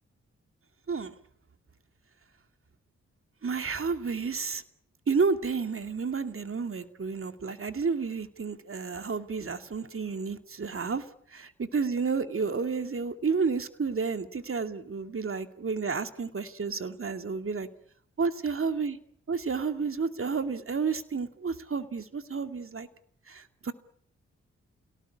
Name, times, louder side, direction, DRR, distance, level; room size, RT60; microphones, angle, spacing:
voice 1, 3.4-4.6 5.1-11.0 11.7-17.7 18.2-19.0 19.3-22.9 23.3-23.7, right 5 dB, 45° right, 9 dB, 2.5 m, -31 dB
27.5 x 18.0 x 8.5 m, 0.67 s
supercardioid pair, 45°, 30 cm